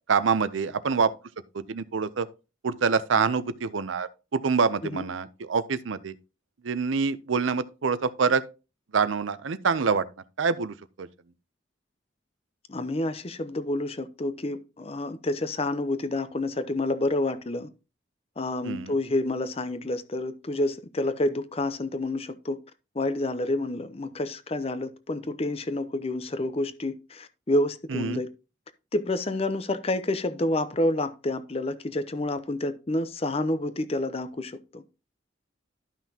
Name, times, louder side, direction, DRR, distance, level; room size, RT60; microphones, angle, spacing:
voice 1, 0.1-1.1 1.5-2.3 2.6-6.1 6.6-8.4 8.9-10.0 10.4-11.1 18.6-18.9 27.9-28.2, right 5 dB, 85° right, 0.6 m, -26 dB
voice 2, 12.7-17.7 18.4-22.6 22.9-28.3 28.9-34.8, left 1 dB, 30° left, 0.6 m, -29 dB
12.5 x 5.8 x 2.8 m
head